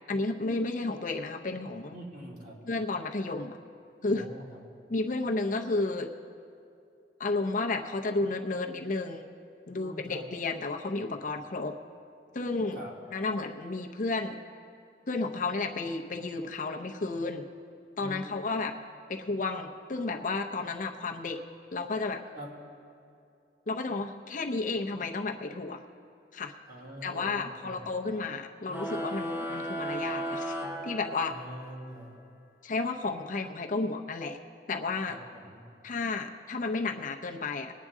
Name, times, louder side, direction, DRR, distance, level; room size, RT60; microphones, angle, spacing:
voice 1, 0.1-2.0 2.7-3.6 4.0-4.3 4.9-6.1 7.2-9.2 9.7-11.7 12.3-12.8 13.1-14.4 15.1-17.4 18.0-18.8 19.1-21.4 21.7-22.2 23.7-25.8 26.3-26.5 27.0-30.6 30.8-31.3 32.6-34.4 34.7-35.2 35.8-37.7, left 3 dB, 45° left, 3 dB, 0.6 m, -32 dB
voice 2, 1.9-2.6 4.1-4.6 9.7-10.2 12.7-12.9 18.0-18.3 22.3-22.5 26.7-27.8 31.3-32.2 35.0-35.6, right 1 dB, 50° right, -3 dB, 2.5 m, -44 dB
sound 1, 28.7-31.7, right 1 dB, 10° right, 0.7 m, -35 dB
21.0 x 9.3 x 3.6 m, 2.5 s
head